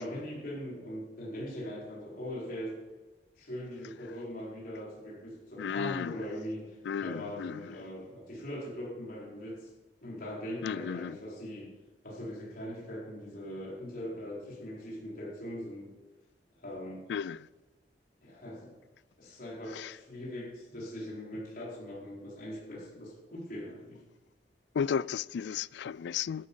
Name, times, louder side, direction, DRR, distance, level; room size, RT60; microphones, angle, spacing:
voice 1, 0.0-2.8 3.4-9.7 10.0-11.7 12.0-15.9 16.6-17.0 18.2-18.7 19.2-24.0, equal, 55° left, 4.4 m, -41 dB
voice 2, 5.6-6.2 6.8-7.8 10.6-11.2 17.1-17.5 19.7-20.0 24.7-26.5, left 7 dB, 70° left, 0.3 m, -34 dB
12.0 x 11.5 x 5.5 m
head